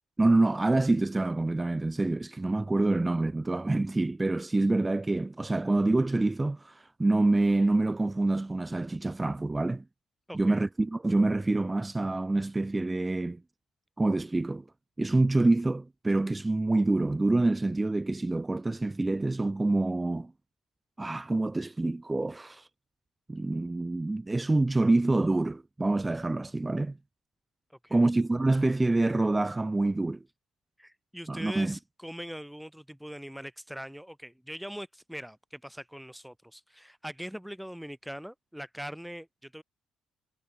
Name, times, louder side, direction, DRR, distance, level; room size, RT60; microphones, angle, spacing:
voice 1, 0.2-6.7 7.0-9.8 10.3-13.4 14.0-14.6 15.0-20.3 21.0-22.6 23.3-27.0 27.9-30.2 31.3-31.8, right 2 dB, 15° right, 0.7 m, -26 dB
voice 2, 10.3-10.6 27.8-28.1 30.8-39.6, equal, ahead, 2.1 m, -42 dB
figure-of-eight pair, 50°, 0 cm